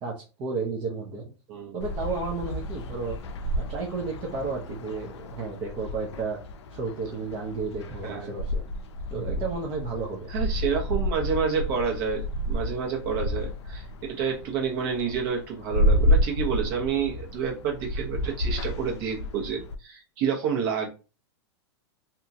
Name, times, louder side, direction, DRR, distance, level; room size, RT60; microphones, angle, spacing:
voice 1, 0.0-1.3 1.7-3.2 3.7-6.4 6.7-8.7 9.1-10.3, right 4 dB, 35° right, -2 dB, 0.8 m, -32 dB
sound 1, 1.8-19.8, equal, 75° left, 0.5 m, -30 dB
voice 2, 8.0-8.4 10.3-20.9, right 6 dB, 55° right, 0 dB, 1.2 m, -29 dB
2.8 x 2.4 x 2.8 m, 0.32 s
hypercardioid pair, 110°, 15 cm